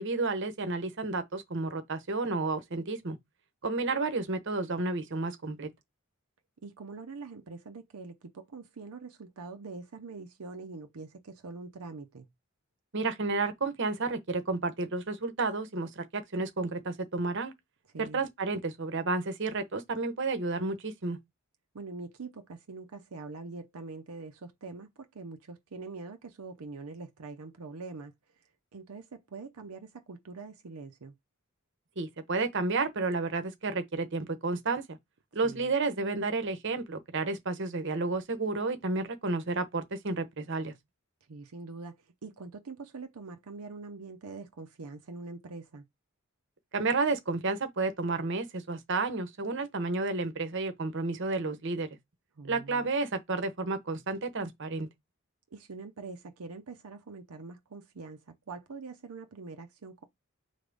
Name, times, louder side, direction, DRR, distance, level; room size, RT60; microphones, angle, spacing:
voice 1, 0.0-3.2 3.6-5.7 12.9-17.5 18.0-21.2 32.0-35.0 35.3-40.7 46.7-51.9 52.5-54.9, right 3 dB, 55° right, 0.8 m, -31 dB
voice 2, 6.6-12.3 17.9-18.2 21.7-28.1 28.7-31.1 35.4-35.7 41.3-45.9 52.4-52.9 55.5-60.0, right 3 dB, 80° right, 0.6 m, -44 dB
3.9 x 3.4 x 3.9 m
head